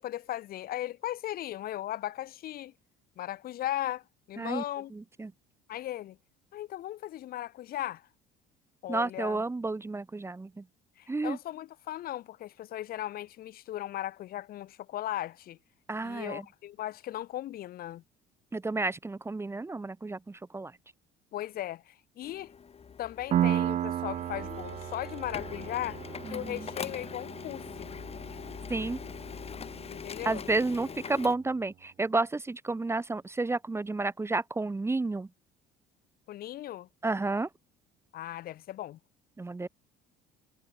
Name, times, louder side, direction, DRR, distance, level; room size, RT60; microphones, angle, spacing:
voice 1, 0.0-2.7 3.2-4.9 5.7-6.2 6.5-8.1 8.8-9.4 11.0-15.6 16.0-18.0 21.3-22.5 23.0-26.0 26.3-27.9 29.9-30.5 36.3-36.9 38.1-39.0, left 13 dB, 60° left, 1.3 m, -37 dB
voice 2, 4.9-5.3 8.9-10.6 11.1-11.4 15.9-16.4 18.5-20.7 26.2-26.7 28.7-29.0 30.2-35.3 37.0-37.5 39.4-39.7, right 3 dB, 15° right, 1.1 m, -31 dB
Printer, 22.2-31.3, left 6 dB, 35° left, 5.4 m, -42 dB
Piano, 23.3-30.7, right 11 dB, 45° right, 0.5 m, -34 dB
supercardioid pair, 95°, 18 cm